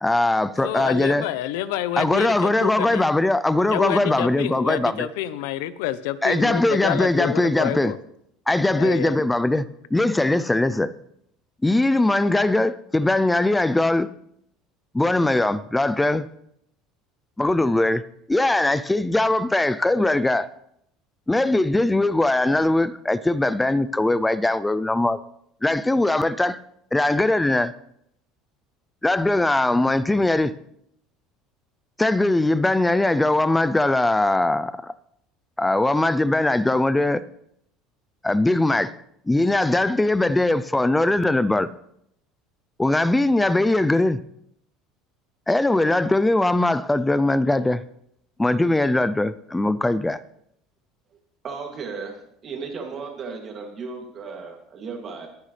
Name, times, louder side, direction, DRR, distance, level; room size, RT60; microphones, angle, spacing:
voice 1, 0.0-1.3 2.0-5.1 6.2-7.9 8.5-10.9 11.6-14.1 14.9-16.3 17.4-18.0 18.3-20.5 21.3-25.2 25.6-26.6 26.9-27.7 29.0-30.5 32.0-34.9 35.6-37.2 38.2-38.9 39.3-41.7 42.8-44.2 45.5-47.8 48.4-50.2, left 2 dB, 5° left, 0.4 m, -20 dB
voice 2, 0.6-3.1 3.7-8.0 8.7-9.2, left 13 dB, 90° left, 0.8 m, -28 dB
voice 3, 51.4-52.2 52.4-55.3, right 5 dB, 30° right, 2.5 m, -35 dB
22.0 x 9.6 x 3.3 m
cardioid pair, 170°, 0 cm